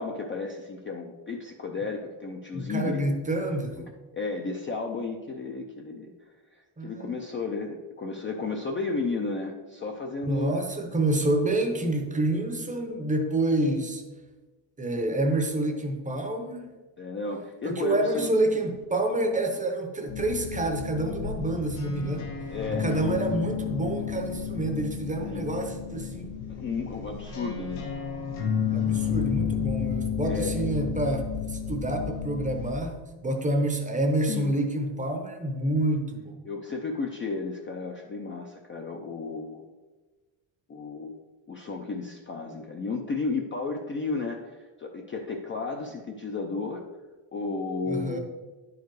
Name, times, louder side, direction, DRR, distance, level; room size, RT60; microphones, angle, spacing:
voice 1, 0.0-3.0 4.1-10.5 17.0-18.3 22.5-22.9 25.3-25.5 26.5-27.9 30.2-30.7 34.2-34.5 36.4-39.7 40.7-41.2 41.5-46.8 47.3-48.2, left 4 dB, 25° left, 2 dB, 0.4 m, -33 dB
voice 2, 2.5-3.8 6.8-7.1 10.2-14.0 14.8-16.7 17.6-26.3 28.7-36.4 47.9-48.2, right 1 dB, 15° right, 4 dB, 0.6 m, -28 dB
sound 1, 20.1-32.7, left 7 dB, 85° left, 1.9 m, -32 dB
10.5 x 4.7 x 4.6 m, 1.2 s
cardioid pair, 175°, 50 cm